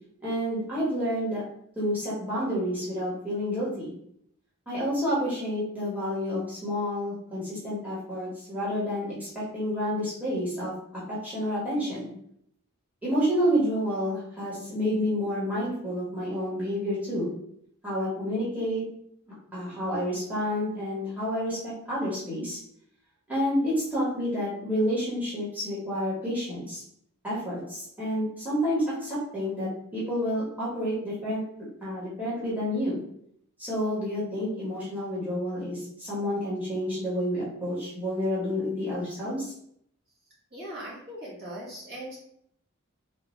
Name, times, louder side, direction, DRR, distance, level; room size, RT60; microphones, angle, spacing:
voice 1, 0.2-1.4 1.8-3.9 4.7-12.1 13.0-17.3 17.8-18.8 19.5-22.6 23.3-26.8 27.2-31.4 31.8-33.0 33.6-39.5, equal, 5° right, -10 dB, 1.1 m, -29 dB
voice 2, 40.5-42.2, right 1 dB, 50° right, -7 dB, 1.3 m, -39 dB
3.4 x 2.3 x 3.1 m, 0.71 s
head